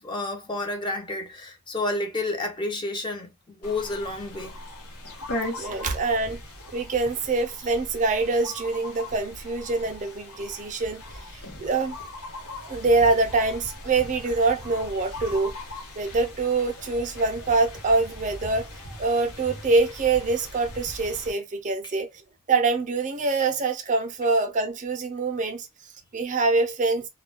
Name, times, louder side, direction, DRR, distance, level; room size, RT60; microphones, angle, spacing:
voice 1, 0.0-3.3 3.6-4.5 21.8-21.9, left 2 dB, 20° left, 0.5 m, -30 dB
sound 1, 3.6-21.3, left 1 dB, 80° left, 0.9 m, -39 dB
voice 2, 5.6-6.4 6.7-11.0 11.3-12.0 12.7-15.5 16.0-18.7 19.0-22.1 22.5-25.7 26.1-27.1, right 3 dB, 35° right, 0.5 m, -24 dB
2.2 x 2.2 x 3.2 m
head